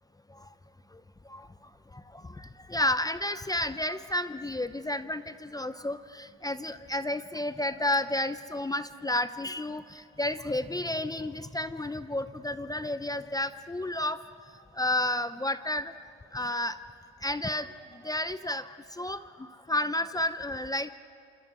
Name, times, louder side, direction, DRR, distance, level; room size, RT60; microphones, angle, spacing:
voice 1, 2.1-14.2 14.8-15.9 16.3-16.8 17.2-20.9, left 1 dB, 10° left, 12 dB, 0.8 m, -31 dB
27.5 x 27.0 x 6.2 m, 2.4 s
supercardioid pair, 85°, 32 cm